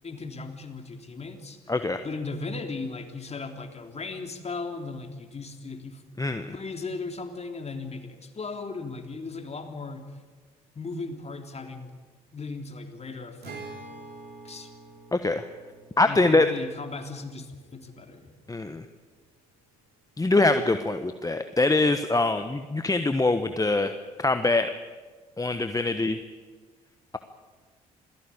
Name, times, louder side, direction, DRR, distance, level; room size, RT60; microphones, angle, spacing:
voice 1, 0.0-1.7 2.0-6.0 6.5-10.0 10.7-11.9 12.3-13.6 14.4-14.7 16.0-18.3, left 3 dB, 35° left, 5 dB, 3.6 m, -37 dB
voice 2, 1.7-2.0 6.2-6.5 15.1-15.4 16.0-16.5 18.5-18.8 20.2-23.9 24.2-24.7 25.4-26.2, left 2 dB, 20° left, 9 dB, 1.4 m, -23 dB
Acoustic guitar, 13.4-18.9, right 3 dB, 60° right, 3.9 m, -47 dB
27.0 x 18.0 x 8.6 m, 1.4 s
figure-of-eight pair, 45°, 19 cm